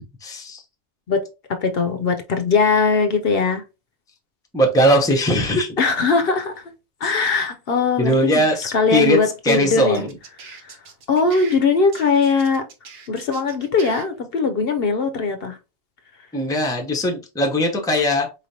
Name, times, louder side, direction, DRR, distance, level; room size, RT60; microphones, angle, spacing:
voice 1, 0.2-0.6 4.5-5.8 7.0-7.1 8.0-10.1 16.3-18.3, equal, 5° left, 0.6 m, -20 dB
voice 2, 1.1-3.6 5.8-6.6 7.0-8.5 8.7-10.0 10.5-10.8 11.1-12.7 13.1-15.6, left 4 dB, 60° left, 0.9 m, -20 dB
sound 1, 9.3-11.6 11.9-14.0, right 5 dB, 65° right, 1.1 m, -41 dB
4.5 x 3.3 x 2.7 m
omnidirectional pair, 1.2 m